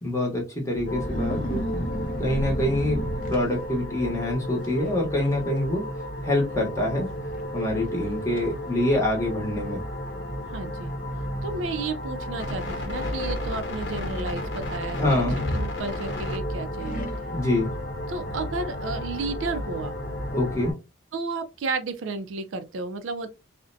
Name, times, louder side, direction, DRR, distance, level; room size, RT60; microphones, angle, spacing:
voice 1, 0.0-1.6 2.2-5.8 6.2-7.1 7.5-9.8 15.0-15.4 17.3-17.7 20.3-20.7, left 1 dB, 15° left, 0.8 m, -25 dB
sound 1, 0.7-4.0 4.6-4.9 5.2-5.6 5.9-6.0 6.8-6.9 7.4-7.5 8.0-8.5 9.3-9.4 12.2-13.2 15.2-16.3 16.8-17.5, equal, 40° left, 0.6 m, -32 dB
sound 2, 0.9-20.7, left 1 dB, 60° left, 0.9 m, -33 dB
voice 2, 10.5-10.9 11.4-15.2 15.5-17.1 18.1-19.9 21.1-23.3, right 3 dB, 85° right, 0.4 m, -32 dB
2.5 x 2.1 x 2.5 m
head